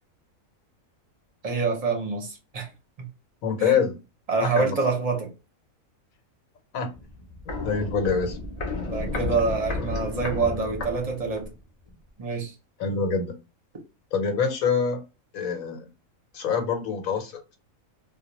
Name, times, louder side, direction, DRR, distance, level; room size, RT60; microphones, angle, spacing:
voice 1, 1.4-2.7 3.0-3.1 3.6-3.7 4.3-5.3 8.9-11.5 12.2-12.5, right 4 dB, 35° right, 0.6 m, -26 dB
voice 2, 3.4-4.0 4.6-4.8 6.7-6.9 7.6-8.4 12.8-13.3 14.1-15.0 15.3-15.9 16.3-17.3, left 6 dB, 90° left, 1.2 m, -25 dB
Walk footsteps, 6.9-11.6 11.9-12.0, left 2 dB, 50° left, 0.5 m, -32 dB
2.3 x 2.2 x 2.8 m
omnidirectional pair, 1.4 m